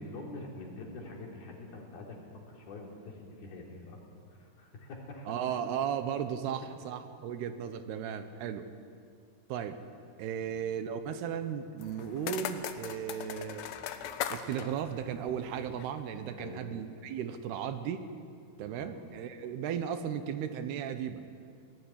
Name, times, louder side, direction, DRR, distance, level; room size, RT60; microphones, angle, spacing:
voice 1, 0.0-4.0 4.4-5.3 10.4-10.6 16.4-16.7 18.6-18.9, left 2 dB, 70° left, -1 dB, 5.4 m, -45 dB
voice 2, 5.3-8.7 9.5-9.8 10.2-13.7 14.3-18.1 18.6-21.2, right 8 dB, 80° right, 10 dB, 3.1 m, -35 dB
sound 1, 11.8-16.0, left 10 dB, 90° left, 3.2 m, -40 dB
21.5 x 18.5 x 9.9 m, 2.3 s
omnidirectional pair, 4.7 m